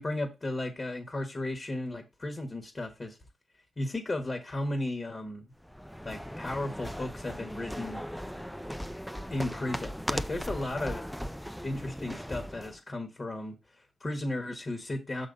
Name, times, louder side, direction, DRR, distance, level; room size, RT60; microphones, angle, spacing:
voice 1, 0.0-3.2 3.8-5.5 6.0-8.0 9.3-11.0 11.6-15.3, left 1 dB, 40° left, 1.4 m, -35 dB
sound 1, 5.6-12.8, equal, 5° left, 0.5 m, -38 dB
6.2 x 4.1 x 5.2 m
supercardioid pair, 45°, 0 cm